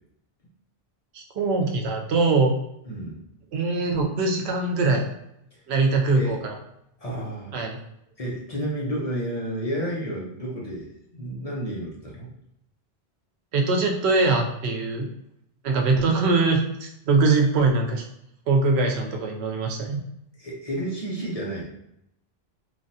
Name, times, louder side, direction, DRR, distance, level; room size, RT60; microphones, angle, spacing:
voice 1, 1.1-2.6 3.5-5.1 5.7-6.6 7.5-7.8 13.5-15.1 15.6-18.1 18.5-20.0, right 3 dB, 80° right, 2 dB, 0.8 m, -22 dB
voice 2, 2.9-3.2 6.1-6.3 7.0-7.5 8.2-12.3 20.4-21.6, right 1 dB, 40° left, -4 dB, 0.7 m, -31 dB
3.1 x 2.2 x 2.6 m, 0.79 s
omnidirectional pair, 1.1 m